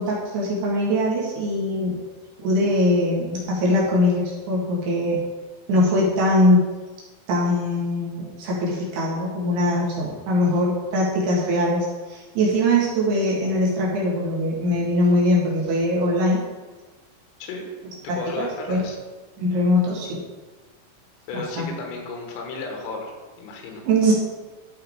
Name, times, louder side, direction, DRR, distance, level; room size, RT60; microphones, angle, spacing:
voice 1, 0.0-2.0 2.4-5.2 5.7-6.7 7.3-16.4 18.1-18.8 19.4-20.2 21.6-21.7 23.9-24.1, left 1 dB, 60° right, -5 dB, 3.7 m, -22 dB
voice 2, 18.0-19.0 21.3-23.8, left 3 dB, 85° left, 2 dB, 4.1 m, -34 dB
13.5 x 4.9 x 4.7 m, 1.3 s
omnidirectional pair, 5.8 m